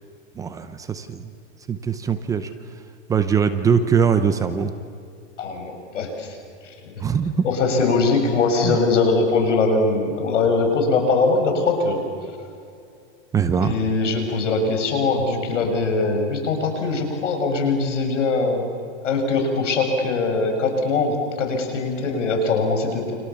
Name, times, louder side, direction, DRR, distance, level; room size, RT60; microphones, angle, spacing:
voice 1, 0.4-1.3 1.7-2.5 3.1-4.7 7.0-7.3 8.6-8.8 13.3-13.7, right 6 dB, 10° right, 9 dB, 0.7 m, -21 dB
voice 2, 5.4-6.9 7.4-12.0 13.5-18.7 19.0-23.1, left 3 dB, 85° left, 4 dB, 7.2 m, -22 dB
29.5 x 27.0 x 7.1 m, 2.4 s
supercardioid pair, 160°, 36 cm